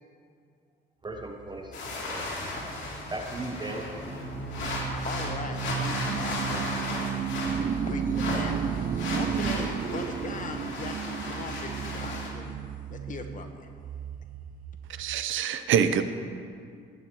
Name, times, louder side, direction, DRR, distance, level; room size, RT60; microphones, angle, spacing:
voice 1, 1.0-2.3 3.1-3.9, right 2 dB, 20° right, 2 dB, 0.9 m, -37 dB
sound 1, 1.1-15.3, right 8 dB, 45° right, 0.4 m, -34 dB
sound 2, 1.7-12.3, left 2 dB, 65° left, 3.0 m, -35 dB
voice 2, 4.6-7.2 7.8-8.8 9.1-12.6 12.9-13.7, left 4 dB, 40° left, 5 dB, 1.2 m, -39 dB
voice 3, 15.0-16.0, right 8 dB, 80° right, 10 dB, 0.7 m, -25 dB
19.5 x 8.5 x 3.0 m, 2.3 s
cardioid pair, 90°, 20 cm